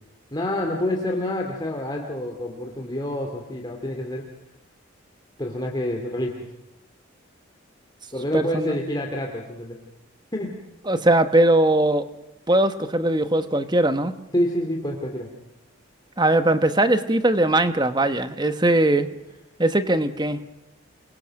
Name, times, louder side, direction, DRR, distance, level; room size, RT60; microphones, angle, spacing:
voice 1, 0.3-4.2 5.4-6.4 8.1-9.8 10.3-10.5 14.3-15.3, left 1 dB, 20° left, 1 dB, 2.6 m, -27 dB
voice 2, 8.3-8.7 10.9-12.0 12.5-14.1 16.2-19.1 19.6-20.4, right 1 dB, 20° right, 10 dB, 1.1 m, -20 dB
28.5 x 23.0 x 6.5 m, 0.92 s
head